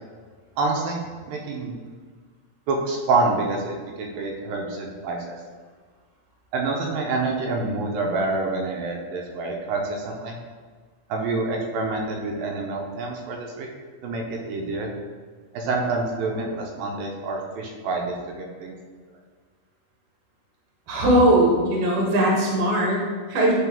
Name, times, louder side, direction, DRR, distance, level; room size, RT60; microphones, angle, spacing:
voice 1, 0.6-1.0 1.3-1.7 2.7-5.4 6.5-10.4 11.1-13.7 14.0-14.9 15.5-18.7, right 3 dB, 85° right, 0 dB, 2.4 m, -27 dB
voice 2, 20.9-23.6, right 1 dB, 55° right, -2 dB, 1.6 m, -20 dB
8.9 x 3.8 x 3.5 m, 1.5 s
omnidirectional pair, 4.2 m